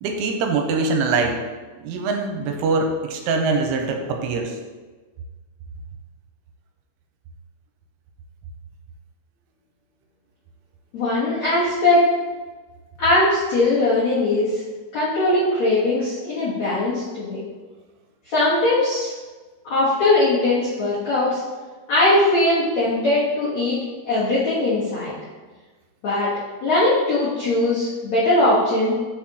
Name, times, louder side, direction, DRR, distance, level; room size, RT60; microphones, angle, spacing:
voice 1, 0.0-1.4 1.8-4.6, right 4 dB, 85° right, 3 dB, 3.1 m, -23 dB
voice 2, 10.9-12.1 13.0-14.6 14.9-17.4 18.3-19.1 19.7-21.4 21.9-23.8 24.0-25.1 26.0-26.3 26.6-28.9, left 2 dB, 75° left, -10 dB, 1.6 m, -20 dB
7.3 x 6.8 x 3.0 m, 1.3 s
omnidirectional pair, 5.6 m